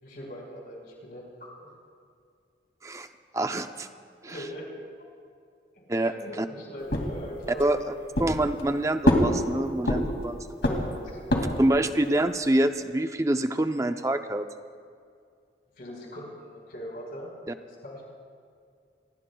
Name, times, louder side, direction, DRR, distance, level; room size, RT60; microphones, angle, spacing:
voice 1, 0.0-1.7 4.3-4.7 5.7-8.1 11.0-11.2 11.8-11.9 15.8-17.3 17.6-18.1, equal, 55° left, -1 dB, 4.4 m, -41 dB
voice 2, 3.3-3.9 4.2-4.4 5.9-6.5 7.6-7.9 8.2-10.5 11.6-14.5 17.5-17.6, right 1 dB, 20° right, 8 dB, 0.5 m, -26 dB
sound 1, 6.9-7.7 8.1-8.7 9.0-10.3 10.6-11.7, left 1 dB, 75° left, 2.4 m, -25 dB
26.5 x 19.0 x 2.3 m, 2.2 s
head